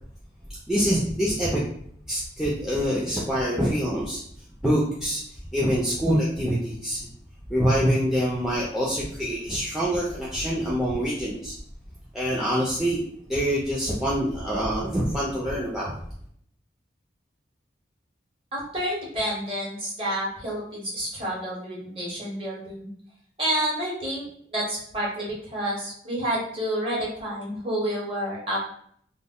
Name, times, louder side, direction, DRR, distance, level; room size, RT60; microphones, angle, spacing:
voice 1, 0.7-1.6 2.1-4.2 4.6-5.2 5.5-7.1 7.5-11.5 12.1-13.0 13.3-15.9, equal, ahead, -6 dB, 0.3 m, -25 dB
voice 2, 18.5-22.9 23.4-24.2 24.5-28.7, right 1 dB, 30° right, -4 dB, 0.8 m, -29 dB
2.1 x 2.1 x 3.6 m, 0.64 s
head